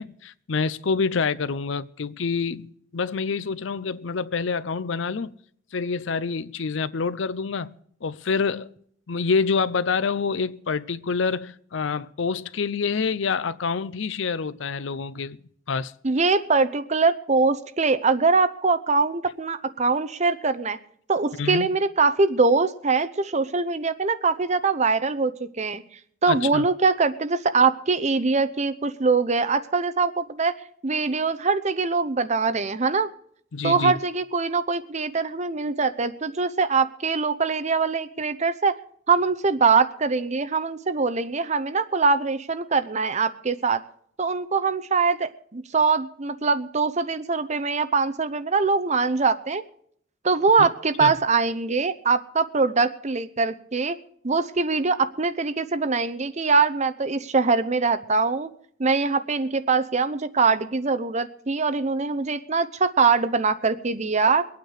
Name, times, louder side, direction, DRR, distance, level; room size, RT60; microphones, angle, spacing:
voice 1, 0.0-5.3 5.7-8.7 9.1-15.4 15.7-15.9 21.4-21.7 26.3-26.6 33.5-33.9 50.6-50.7 51.0-51.1, left 5 dB, 70° left, 0.6 m, -27 dB
voice 2, 16.0-20.8 21.1-25.8 26.2-30.6 30.8-33.1 33.6-38.8 39.1-43.8 44.2-49.6 50.2-54.0 54.2-58.5 58.8-64.5, right 4 dB, 35° right, 0.7 m, -23 dB
23.0 x 9.1 x 4.8 m
head